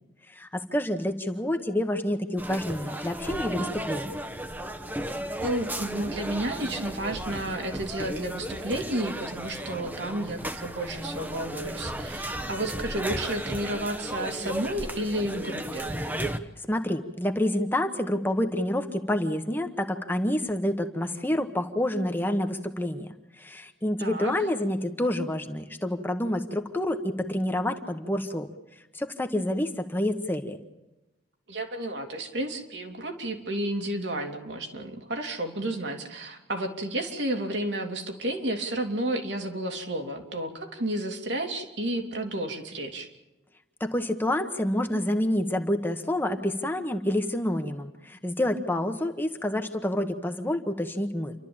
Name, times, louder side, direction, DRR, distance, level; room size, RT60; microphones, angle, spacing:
voice 1, 0.3-4.1 16.6-23.1 23.4-28.5 28.9-30.6 43.8-51.3, left 1 dB, 10° left, 5 dB, 1.1 m, -28 dB
sound 1, 2.4-16.4, right 1 dB, 10° right, 1.0 m, -34 dB
voice 2, 5.4-15.9 24.0-24.3 31.5-43.1, right 1 dB, 70° right, 3 dB, 2.9 m, -31 dB
29.0 x 12.5 x 8.8 m, 1.0 s
head